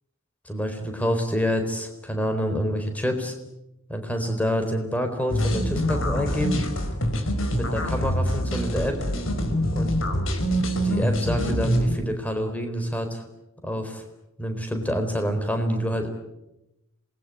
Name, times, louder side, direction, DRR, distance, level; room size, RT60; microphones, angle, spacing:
voice 1, 0.5-3.3 3.9-6.6 7.6-9.0 9.8-9.9 10.8-13.2 13.6-14.0 14.4-16.1, equal, 5° left, 5 dB, 4.2 m, -27 dB
sound 1, 5.3-12.0, equal, 80° left, 4.9 m, -25 dB
27.0 x 21.0 x 9.7 m, 0.91 s
head